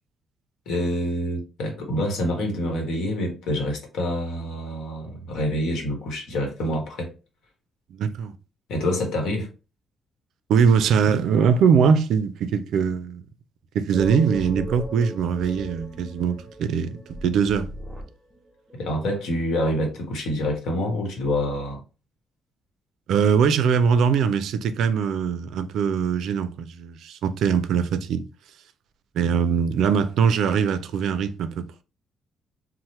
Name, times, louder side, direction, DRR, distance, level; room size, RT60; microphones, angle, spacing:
voice 1, 0.7-7.1 8.7-9.5 18.7-21.8, left 1 dB, 80° left, 1.0 m, -27 dB
voice 2, 7.9-8.3 10.5-13.2 13.7-17.7 23.1-28.2 29.2-31.8, right 6 dB, 75° right, 0.3 m, -22 dB
sound 1, 13.9-18.9, right 1 dB, ahead, 1.0 m, -37 dB
2.8 x 2.0 x 3.0 m
cardioid pair, 90°, 0 cm